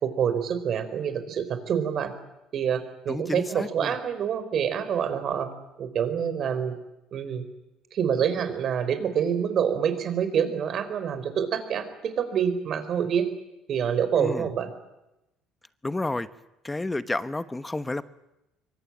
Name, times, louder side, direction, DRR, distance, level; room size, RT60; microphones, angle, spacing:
voice 1, 0.0-2.1 2.5-5.5 5.8-6.8 7.1-7.4 7.9-13.3 13.7-14.7, right 8 dB, 45° right, 10 dB, 4.2 m, -26 dB
voice 2, 3.1-3.9 14.2-14.5 15.8-16.3 16.6-18.0, left 2 dB, 10° left, 13 dB, 1.0 m, -30 dB
25.0 x 23.5 x 8.8 m, 0.93 s
cardioid pair, 140°, 0 cm